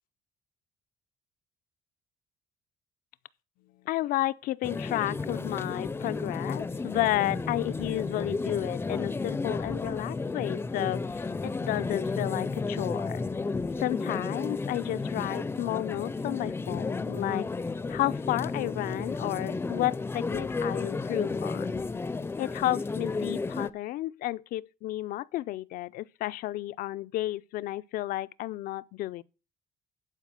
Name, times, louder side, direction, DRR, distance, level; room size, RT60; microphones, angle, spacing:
voice 1, 3.8-13.2 13.8-17.4 17.9-21.8 22.4-29.2, left 15 dB, 80° left, 0.5 m, -32 dB
sound 1, 4.6-23.7, left 3 dB, 15° left, 0.5 m, -33 dB
11.0 x 4.9 x 7.6 m
cardioid pair, 130°, 15 cm